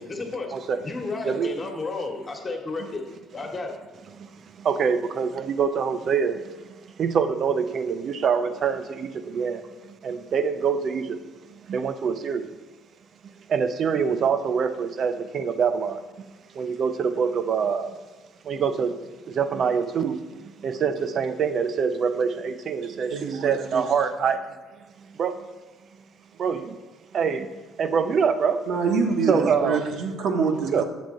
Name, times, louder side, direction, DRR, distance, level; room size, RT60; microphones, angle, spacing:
voice 1, 0.0-0.5 0.8-3.0 3.3-3.7, left 3 dB, 35° left, 1.3 m, -32 dB
voice 2, 0.5-0.9 1.2-1.5 2.8-2.9 4.2-11.2 11.5-12.6 13.2-16.3 16.5-18.0 18.4-19.0 19.3-24.4 25.0-25.5 26.4-26.8 27.1-27.5 27.8-28.7 29.3-29.9 30.7-30.8, right 6 dB, 55° right, 0.5 m, -25 dB
voice 3, 23.1-23.9 28.7-30.8, right 5 dB, 70° right, 1.1 m, -25 dB
7.4 x 7.0 x 3.8 m
supercardioid pair, 85°, 0 cm